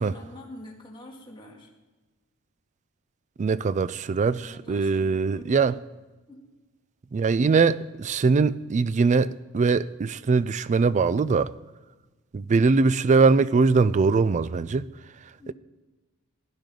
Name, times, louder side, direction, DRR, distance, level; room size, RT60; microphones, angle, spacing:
voice 1, 0.0-1.7 4.4-5.7 6.3-6.4 15.4-15.5, left 1 dB, 20° left, 1.9 m, -45 dB
voice 2, 3.4-5.8 7.1-11.5 12.3-14.9, right 4 dB, 35° right, 0.3 m, -22 dB
17.0 x 10.5 x 3.8 m
head